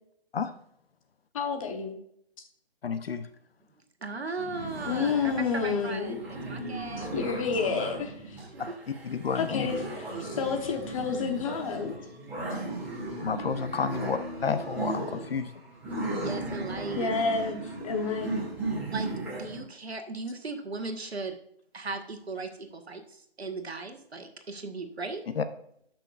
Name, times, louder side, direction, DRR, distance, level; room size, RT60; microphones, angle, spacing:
voice 1, 1.3-2.0 4.9-6.2 7.0-8.4 9.3-11.9 17.0-17.6 17.8-18.5, left 5 dB, 35° left, 5 dB, 1.1 m, -30 dB
voice 2, 2.8-3.3 9.0-9.7 13.2-15.5 25.4-25.5, left 5 dB, 70° left, 10 dB, 0.8 m, -30 dB
voice 3, 4.0-7.1 8.4-8.7 12.5-12.8 16.2-17.1 18.9-19.1 19.3-21.4 21.7-25.2, right 3 dB, 85° right, 6 dB, 1.4 m, -37 dB
sound 1, 4.4-19.6, right 2 dB, 5° right, 2.1 m, -36 dB
12.0 x 6.0 x 2.5 m, 0.70 s
figure-of-eight pair, 150°, 31 cm